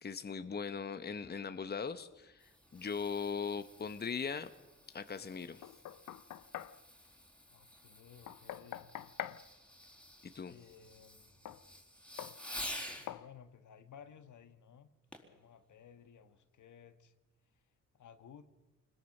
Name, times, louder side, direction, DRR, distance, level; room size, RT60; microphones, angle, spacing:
voice 1, 0.0-4.5 4.9-5.6 10.2-10.5, left 5 dB, 30° left, 10 dB, 1.1 m, -39 dB
Fireworks, 2.1-13.1 15.1-15.4 16.0-16.1, left 1 dB, 5° left, 4.3 m, -50 dB
Knock, 5.6-6.8 8.3-9.4 11.4-11.6 12.2-12.4 13.1-13.3, left 12 dB, 85° left, 0.9 m, -44 dB
voice 2, 7.5-8.9 10.5-11.4 12.9-14.9 15.2-17.1 17.5-17.6 17.9-18.4, left 8 dB, 70° left, 10 dB, 1.6 m, -57 dB
26.0 x 21.0 x 6.7 m, 1.1 s
cardioid pair, 90°, 31 cm